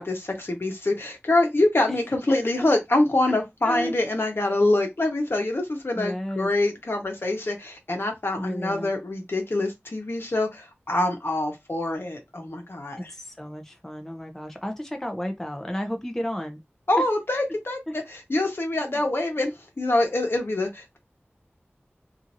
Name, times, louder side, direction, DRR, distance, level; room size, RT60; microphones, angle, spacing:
voice 1, 0.0-13.1 16.9-21.0, left 2 dB, 65° left, 0.9 m, -25 dB
voice 2, 3.6-3.9 6.0-6.5 8.4-8.9 13.0-16.6 18.8-19.0, equal, 10° left, 0.6 m, -32 dB
2.8 x 2.5 x 2.6 m
wide cardioid pair, 55°, 4 cm